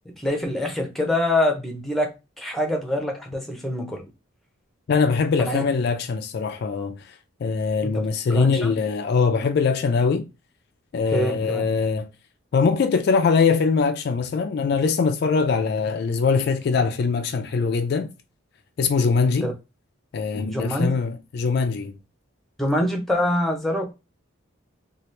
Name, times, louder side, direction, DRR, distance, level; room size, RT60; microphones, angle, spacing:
voice 1, 0.2-2.1 2.4-4.0 5.4-5.6 7.8-8.0 8.3-8.7 11.1-11.7 19.4-19.5 20.5-21.0 22.6-23.9, left 1 dB, ahead, 0.6 m, -25 dB
voice 2, 4.9-7.0 7.4-10.2 10.9-12.1 12.5-18.1 18.8-19.5 20.1-21.9, left 5 dB, 55° left, 0.3 m, -22 dB
2.9 x 2.4 x 3.1 m
head